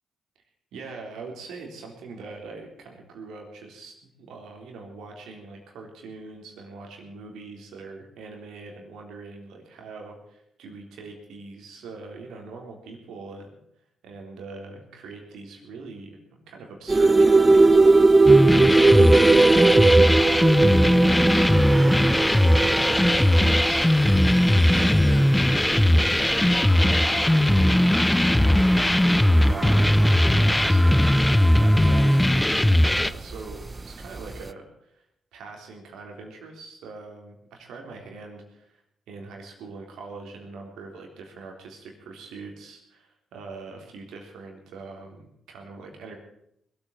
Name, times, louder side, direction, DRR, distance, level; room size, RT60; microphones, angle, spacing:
voice 1, 0.7-13.6 14.0-16.2 16.5-18.4 18.7-22.1 22.4-23.9 24.4-32.8 33.0-35.0 35.3-38.8 39.1-46.2, right 4 dB, 80° right, 2 dB, 3.7 m, -42 dB
sound 1, 16.9-32.5 32.9-34.4, right 3 dB, 30° right, 0.7 m, -20 dB
sound 2, 18.3-33.1, left 1 dB, 10° left, 0.7 m, -19 dB
sound 3, 21.0-32.3, right 1 dB, 10° right, 1.4 m, -34 dB
21.0 x 8.6 x 7.4 m, 0.75 s
supercardioid pair, 45°, 0 cm